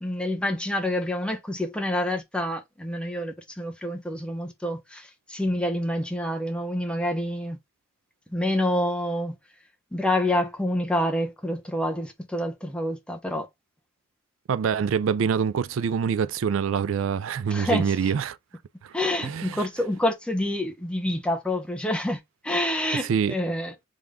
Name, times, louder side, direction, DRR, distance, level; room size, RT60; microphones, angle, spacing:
voice 1, 0.0-7.6 8.3-9.4 9.9-13.5 17.5-18.1 18.9-23.7, left 1 dB, 5° left, 0.7 m, -27 dB
voice 2, 14.5-18.4 18.8-18.9 19.2-19.7 23.0-23.3, right 7 dB, 70° right, 0.3 m, -25 dB
3.6 x 3.4 x 3.5 m
head